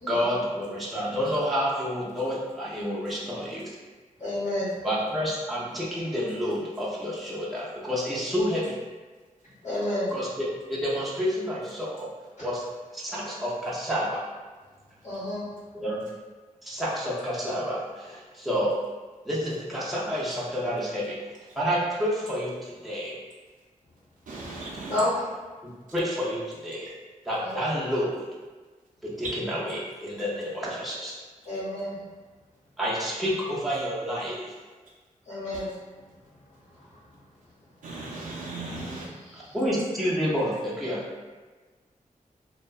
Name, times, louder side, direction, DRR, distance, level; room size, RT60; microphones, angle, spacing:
voice 1, 0.1-3.7 4.8-8.7 10.1-12.1 12.4-12.7 12.9-14.3 15.7-16.0 16.6-18.7 19.3-21.2 21.5-23.2 25.9-26.9 27.3-28.2 29.0-31.2 32.8-34.5 39.5-41.0, equal, ahead, 0.4 m, -29 dB
voice 2, 4.2-4.7 9.6-10.1 15.0-15.4 24.9-25.3 27.4-27.5 31.5-32.0 35.3-35.7, left 1 dB, 70° left, 0.9 m, -29 dB
voice 3, 24.3-25.0 37.8-39.1, right 2 dB, 70° right, 0.4 m, -37 dB
2.6 x 2.1 x 2.3 m
wide cardioid pair, 155°, 14 cm